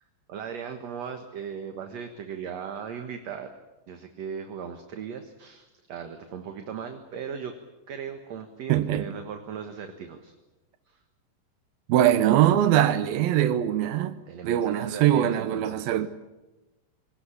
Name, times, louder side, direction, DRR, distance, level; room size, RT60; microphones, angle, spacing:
voice 1, 0.3-3.5 3.9-7.5 7.9-10.3 10.9-11.0 14.3-16.0, right 7 dB, 55° right, 2.3 m, -37 dB
voice 2, 8.7-9.1 11.9-14.2 14.4-16.1, right 11 dB, 85° right, 2.8 m, -22 dB
25.0 x 18.5 x 10.0 m
omnidirectional pair, 4.1 m